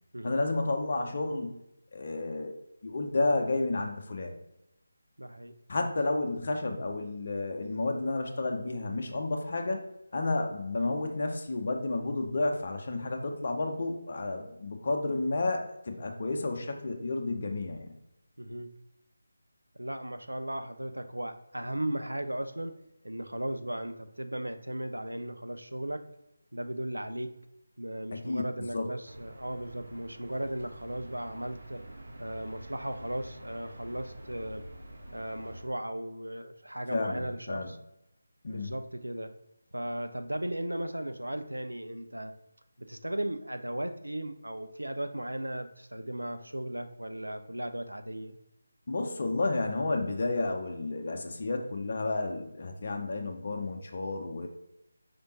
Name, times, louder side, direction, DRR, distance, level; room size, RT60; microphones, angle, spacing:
voice 1, 0.2-1.6 1.9-2.6 2.8-4.3 5.7-9.8 10.1-17.9 28.1-28.4 28.7-28.9 36.9-37.7 38.4-38.7 48.9-54.5, left 2 dB, 45° left, 3 dB, 0.7 m, -31 dB
voice 2, 5.2-5.5 18.4-18.7 19.7-22.8 23.0-26.0 26.5-27.3 27.8-31.8 32.2-34.7 35.1-37.8 38.5-39.3 39.7-42.3 42.8-48.4, right 1 dB, 85° right, 9 dB, 0.5 m, -36 dB
sound 1, 29.1-35.6, right 1 dB, 60° right, 0.9 m, -47 dB
5.0 x 3.4 x 2.7 m, 0.87 s
figure-of-eight pair, 160°, 0 cm